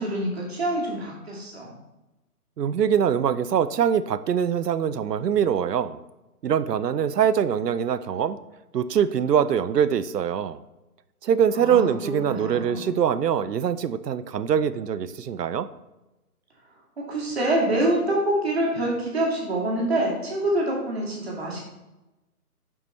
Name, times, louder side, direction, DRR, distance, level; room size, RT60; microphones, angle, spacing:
voice 1, 0.0-1.7 11.5-13.0 17.0-21.7, right 1 dB, 40° right, -3 dB, 2.0 m, -26 dB
voice 2, 2.6-6.0 6.4-8.4 8.7-10.6 11.2-15.7, right 8 dB, 90° right, 15 dB, 0.6 m, -23 dB
7.2 x 5.4 x 3.2 m, 1.0 s
hypercardioid pair, 165°, 47 cm